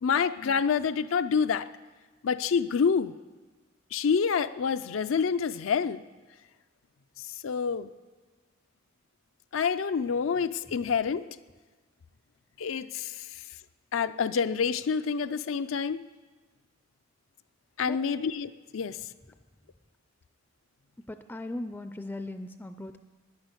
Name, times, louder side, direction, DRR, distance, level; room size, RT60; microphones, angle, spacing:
voice 1, 0.0-1.7 2.2-3.1 3.9-6.0 7.4-7.9 9.5-11.2 12.6-13.3 13.9-16.0 17.8-19.0, left 6 dB, 90° left, 10 dB, 0.5 m, -27 dB
voice 2, 21.1-23.0, left 1 dB, 10° left, 9 dB, 0.4 m, -38 dB
10.5 x 10.5 x 8.1 m, 1.3 s
head